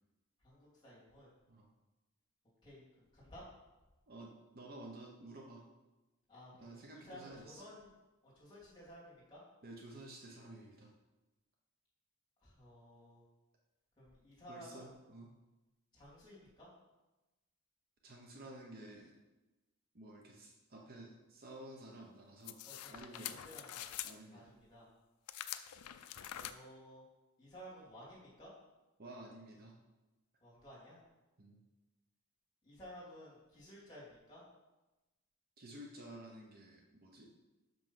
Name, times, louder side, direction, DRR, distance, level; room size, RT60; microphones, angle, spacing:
voice 1, 0.4-1.3 2.6-2.8 3.1-3.4 6.3-7.9 8.2-9.4 12.4-13.2 14.0-14.8 15.9-16.7 22.6-23.9 24.3-24.9 26.3-27.0 27.4-28.5 30.4-31.0 32.6-34.4, equal, 20° left, -7 dB, 2.9 m, -55 dB
voice 2, 4.1-5.6 6.5-7.6 9.6-10.9 14.5-15.3 18.0-19.1 19.9-22.6 22.9-23.4 24.0-24.5 29.0-29.8 31.4-31.6 35.6-37.3, right 1 dB, 45° right, 0 dB, 0.9 m, -52 dB
sound 1, 22.4-24.1 25.3-26.5, left 11 dB, 90° left, 0.4 m, -45 dB
6.2 x 5.4 x 5.6 m, 1.1 s
head